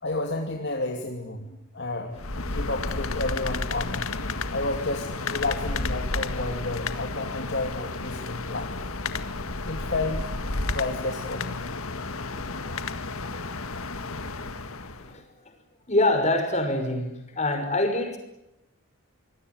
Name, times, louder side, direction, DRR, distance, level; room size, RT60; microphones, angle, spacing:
voice 1, 0.0-4.1 4.5-8.7 9.7-10.3 10.7-11.6, left 2 dB, 55° left, 2 dB, 2.7 m, -31 dB
sound 1, 2.1-15.1, left 3 dB, 80° left, 1.8 m, -32 dB
voice 2, 12.2-12.8 14.7-15.2 15.9-18.2, left 2 dB, 30° left, 6 dB, 5.7 m, -26 dB
26.0 x 21.0 x 9.5 m, 0.89 s
head